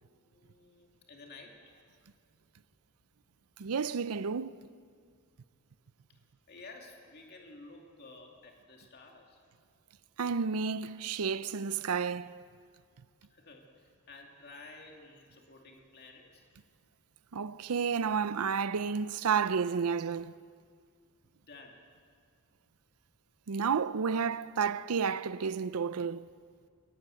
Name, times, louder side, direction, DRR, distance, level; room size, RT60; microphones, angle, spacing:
voice 1, 0.3-1.7 6.1-6.2 6.5-9.4 13.3-16.4 21.5-21.8, left 3 dB, 45° left, 2.6 m, -52 dB
voice 2, 3.6-4.6 10.2-12.4 17.3-20.3 23.5-26.3, right 6 dB, 90° right, 0.6 m, -31 dB
21.5 x 19.0 x 7.8 m
head